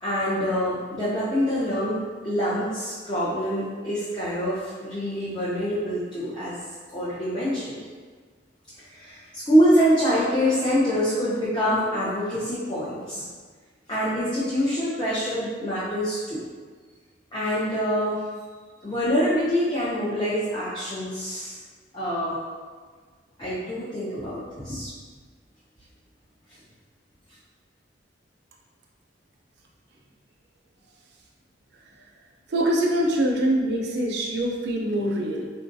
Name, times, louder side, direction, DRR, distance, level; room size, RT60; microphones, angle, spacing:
voice 1, 0.0-6.6 6.9-7.8 8.9-13.3 13.9-16.4 17.3-18.2 18.8-21.6 21.9-22.4 23.4-24.9, equal, 25° left, -10 dB, 0.5 m, -25 dB
voice 2, 32.5-35.5, right 1 dB, 60° right, -1 dB, 0.5 m, -24 dB
3.7 x 2.3 x 2.6 m, 1.5 s
head